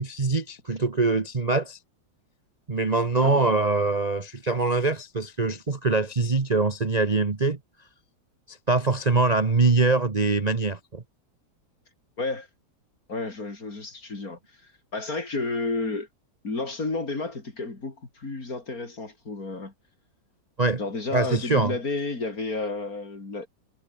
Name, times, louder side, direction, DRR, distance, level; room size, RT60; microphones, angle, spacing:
voice 1, 0.0-1.8 2.7-7.6 8.5-11.0 20.6-20.8 21.1-21.8, right 3 dB, 25° right, 1.0 m, -23 dB
voice 2, 12.2-12.5 13.1-16.1 16.4-19.7 20.8-23.5, left 3 dB, 45° left, 4.4 m, -31 dB
omnidirectional pair, 2.1 m